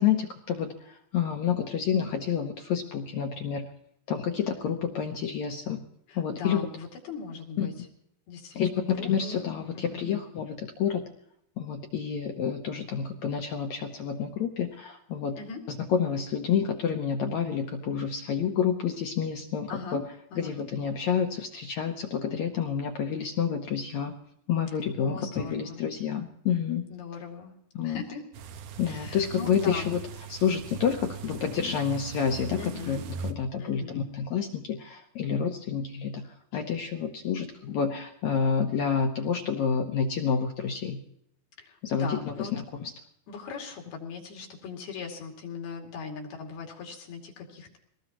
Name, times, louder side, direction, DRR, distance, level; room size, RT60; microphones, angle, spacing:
voice 1, 0.0-3.7 4.1-5.8 6.2-6.6 7.6-7.7 8.5-11.0 11.6-15.4 15.7-20.0 20.4-24.1 24.5-26.8 27.7-28.0 28.8-30.0 30.3-32.6 32.9-33.0 33.2-36.3 36.5-41.0 41.8-42.9, left 7 dB, 70° left, 4 dB, 1.8 m, -29 dB
voice 2, 6.1-7.9 8.3-9.4 9.7-10.1 15.4-15.7 19.7-20.0 20.3-20.5 25.0-25.8 26.9-27.5 27.8-28.3 28.8-30.0 32.6-33.0 33.6-34.0 41.6-42.5 43.3-47.8, left 5 dB, 85° left, 1 dB, 4.5 m, -40 dB
Brakes Squeak in Rain, 28.3-33.3, right 6 dB, 70° right, 2.2 m, -40 dB
24.0 x 19.0 x 3.0 m, 0.74 s
omnidirectional pair, 4.3 m